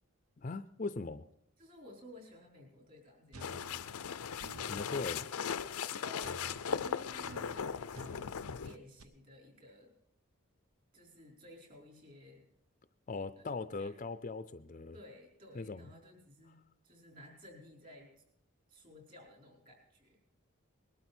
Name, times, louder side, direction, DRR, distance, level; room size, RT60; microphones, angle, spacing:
voice 1, 0.4-1.2 4.7-5.3 13.1-15.0 15.5-15.9, left 3 dB, 35° left, 12 dB, 0.5 m, -39 dB
voice 2, 1.6-4.0 5.9-6.3 6.6-8.4 8.6-9.9 10.9-12.5 13.4-13.5 13.8-13.9 14.9-18.1 18.7-20.2, left 1 dB, 40° right, 0 dB, 4.8 m, -55 dB
sound 1, 3.3-4.9 6.2-9.0, right 2 dB, 85° right, 1.0 m, -52 dB
sound 2, 3.4-8.8, left 7 dB, 90° left, 0.6 m, -38 dB
20.5 x 12.5 x 4.4 m, 0.76 s
head